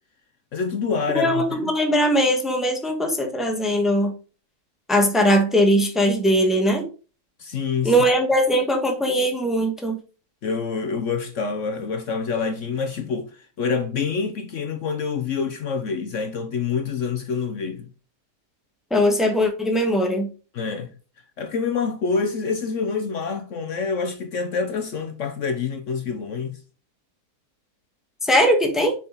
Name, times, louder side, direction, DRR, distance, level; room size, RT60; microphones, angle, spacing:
voice 1, 0.5-1.7 7.4-8.0 10.4-17.9 20.5-20.9 21.4-26.6, left 5 dB, 60° left, 1.1 m, -27 dB
voice 2, 1.1-4.1 4.9-6.9 7.8-10.0 18.9-20.3 28.2-28.9, equal, ahead, 1.1 m, -20 dB
6.9 x 5.0 x 3.9 m
omnidirectional pair, 1.6 m